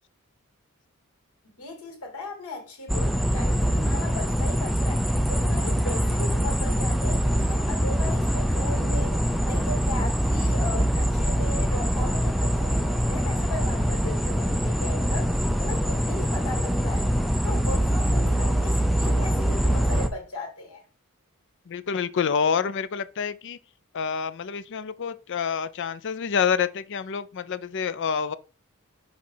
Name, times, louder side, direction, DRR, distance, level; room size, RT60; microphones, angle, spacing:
voice 1, 1.4-5.0 5.3-9.2 9.4-17.1 17.4-20.8, left 2 dB, 80° left, 2.6 m, -37 dB
sound 1, 2.9-20.1, equal, ahead, 0.4 m, -24 dB
voice 2, 21.7-23.6 23.9-28.4, left 6 dB, 55° left, 0.5 m, -27 dB
6.1 x 3.2 x 5.6 m
head